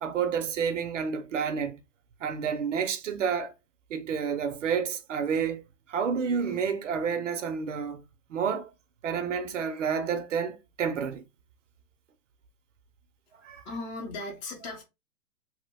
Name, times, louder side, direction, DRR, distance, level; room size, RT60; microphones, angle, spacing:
voice 1, 0.0-1.8 2.2-3.5 3.9-5.6 5.9-8.0 8.3-8.7 9.0-11.2 13.4-13.6, right 6 dB, 55° right, 0.6 m, -29 dB
voice 2, 13.6-14.8, left 2 dB, 30° left, 0.7 m, -37 dB
3.0 x 2.1 x 3.3 m
hypercardioid pair, 165°, 46 cm